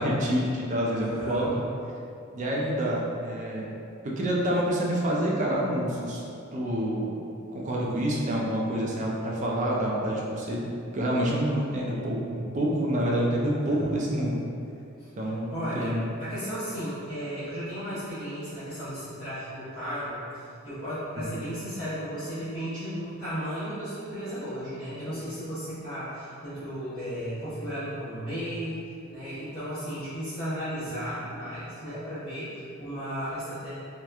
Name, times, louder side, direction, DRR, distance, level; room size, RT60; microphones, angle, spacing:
voice 1, 0.0-1.6 2.3-3.6 4.0-6.2 6.5-7.1 7.5-10.6 10.9-14.3 15.2-16.0 21.2-21.4, right 1 dB, 35° right, -3 dB, 0.4 m, -27 dB
voice 2, 1.0-1.6 13.6-14.0 15.0-15.1 15.5-20.2 20.6-33.7, equal, 50° left, -17 dB, 0.8 m, -34 dB
2.8 x 2.1 x 2.3 m, 2.6 s
head